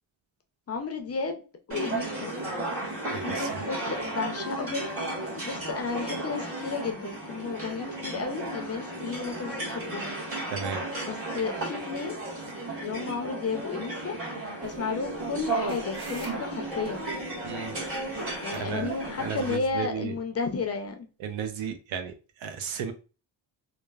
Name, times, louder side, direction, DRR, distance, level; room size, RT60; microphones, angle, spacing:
voice 1, 0.7-1.4 1.7-2.3 3.2-4.9 5.4-10.2 11.1-12.2 12.8-14.1 14.6-17.0 18.4-21.1, left 5 dB, 30° left, 0.5 m, -33 dB
sound 1, 1.7-19.6, right 2 dB, 30° right, 1.3 m, -34 dB
voice 2, 3.1-3.6 10.5-10.9 17.4-17.7 18.5-18.9 19.2-20.1 21.2-22.9, right 7 dB, 70° right, 0.7 m, -34 dB
sound 2, 14.6-19.7, right 2 dB, 50° right, 1.3 m, -48 dB
3.0 x 2.0 x 2.3 m
cardioid pair, 100°, 48 cm